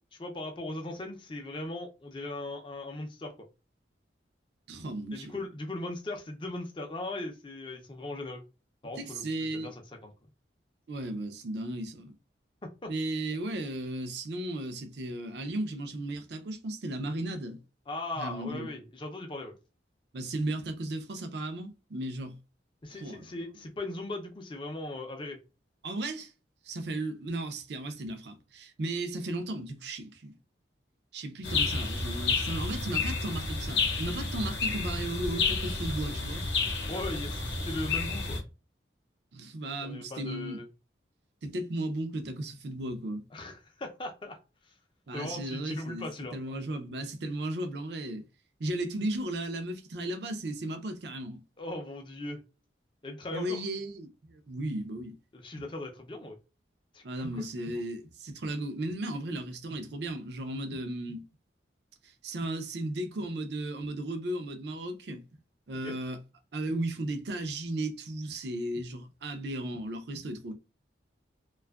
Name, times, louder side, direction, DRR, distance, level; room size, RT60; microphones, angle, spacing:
voice 1, 0.1-3.3 5.1-8.4 8.8-10.1 12.8-12.9 17.9-19.5 22.8-25.4 36.9-38.4 39.8-40.7 43.3-44.4 45.1-46.4 51.6-52.4 53.0-53.6 55.3-56.4 56.9-57.0 57.3-57.7 65.8-66.0, left 2 dB, 25° left, 0.5 m, -38 dB
voice 2, 4.7-5.4 9.0-9.7 10.9-12.1 12.9-17.6 18.2-18.7 20.1-22.4 22.9-23.3 25.8-26.3 26.6-30.4 31.1-36.4 39.3-40.6 41.4-43.2 45.1-48.2 48.6-51.4 53.3-55.2 55.5-55.6 57.0-61.2 62.0-65.2 65.7-66.2 66.5-70.5, right 1 dB, 65° right, 0.5 m, -35 dB
sound 1, 31.4-38.4, left 4 dB, 70° left, 0.7 m, -30 dB
2.6 x 2.3 x 2.3 m
head